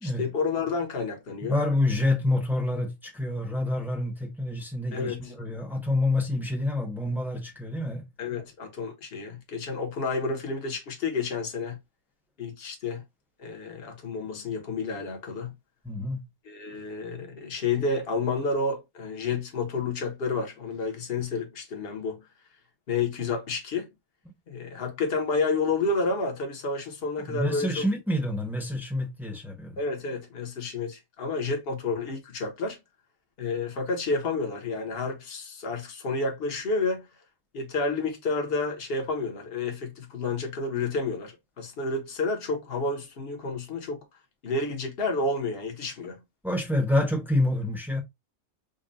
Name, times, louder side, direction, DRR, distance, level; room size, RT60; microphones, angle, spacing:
voice 1, 0.0-1.6 4.9-5.3 8.2-11.8 12.4-13.0 13.4-15.5 16.4-22.3 22.9-23.9 24.5-27.8 29.8-32.8 33.4-37.1 37.5-44.0 44.4-46.2, left 3 dB, 45° left, 1.2 m, -30 dB
voice 2, 1.4-8.0 15.8-16.2 27.3-29.8 46.4-48.0, left 1 dB, ahead, 1.0 m, -27 dB
5.3 x 2.4 x 2.6 m
omnidirectional pair, 1.5 m